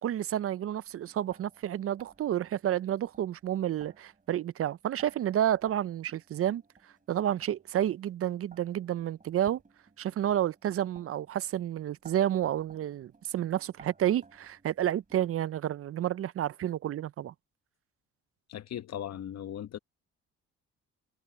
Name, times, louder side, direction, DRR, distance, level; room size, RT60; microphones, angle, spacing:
voice 1, 0.0-6.6 7.1-9.6 10.0-17.3, right 11 dB, 50° right, 0.5 m, -30 dB
sound 1, 0.8-15.5, right 4 dB, 25° right, 6.1 m, -60 dB
voice 2, 18.5-19.8, left 10 dB, 60° left, 1.0 m, -38 dB
cardioid pair, 90°, 30 cm